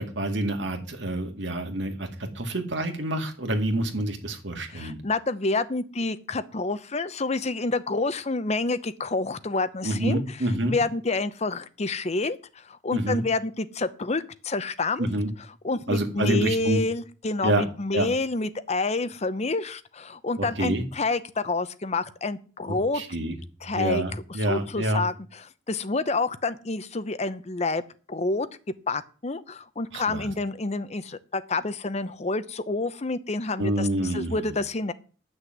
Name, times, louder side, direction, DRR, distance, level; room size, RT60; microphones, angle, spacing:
voice 1, 0.0-5.0 9.8-10.8 12.9-13.2 15.0-15.3 15.9-16.8 17.4-17.6 17.9-18.1 20.4-20.8 22.7-23.4 23.7-25.0 29.9-30.3 33.6-34.5, right 1 dB, 70° right, 4 dB, 2.1 m, -27 dB
voice 2, 4.7-10.2 10.7-15.1 15.6-23.0 23.6-24.0 24.5-25.1 25.7-27.8 28.1-28.5 28.9-34.9, left 3 dB, 35° left, 13 dB, 0.8 m, -28 dB
9.8 x 6.4 x 7.7 m, 0.38 s
head